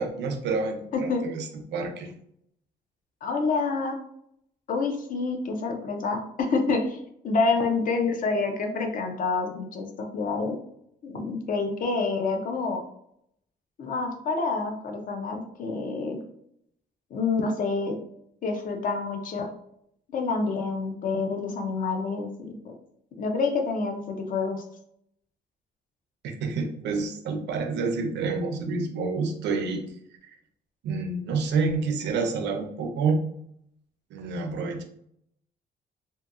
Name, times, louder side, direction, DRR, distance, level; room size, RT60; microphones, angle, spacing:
voice 1, 0.0-2.1 26.2-29.8 30.2-30.4 30.8-33.2 34.1-34.8, right 4 dB, 85° right, 4 dB, 0.5 m, -28 dB
voice 2, 0.9-1.2 3.2-4.0 4.7-7.0 7.2-10.6 11.0-12.8 13.8-16.2 17.1-18.0 18.4-19.5 20.1-22.7 23.1-24.6, left 4 dB, 50° left, 3 dB, 0.5 m, -27 dB
2.7 x 2.6 x 2.4 m, 0.72 s
cardioid pair, 165°, 18 cm